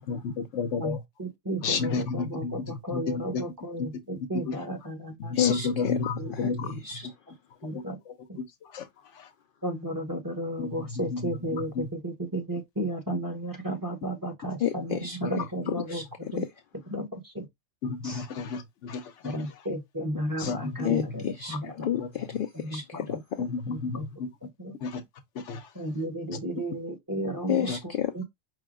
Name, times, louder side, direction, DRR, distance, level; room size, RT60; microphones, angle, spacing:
voice 1, 0.1-1.0 1.6-3.4 4.5-4.6 5.2-6.7 8.7-8.8 10.6-11.8 17.8-19.3 20.4-20.8 23.4-24.3 24.8-25.0 25.5-25.6 27.7-27.8, left 4 dB, 85° left, 1.0 m, -31 dB
voice 2, 0.8-5.3 6.2-6.3 6.6-6.8 7.6-8.0 8.3-8.4 9.6-16.0 16.3-16.4 16.9-17.1 17.3-17.5 18.0-18.2 19.2-21.2 21.5-21.9 22.7-23.2 23.7-24.1 24.4-24.7 25.7-27.7 28.1-28.2, right 1 dB, 20° right, 0.8 m, -33 dB
voice 3, 5.3-7.1 14.6-16.5 20.8-23.5 27.5-28.2, left 10 dB, 60° left, 0.6 m, -31 dB
5.1 x 2.2 x 3.5 m
omnidirectional pair, 1.2 m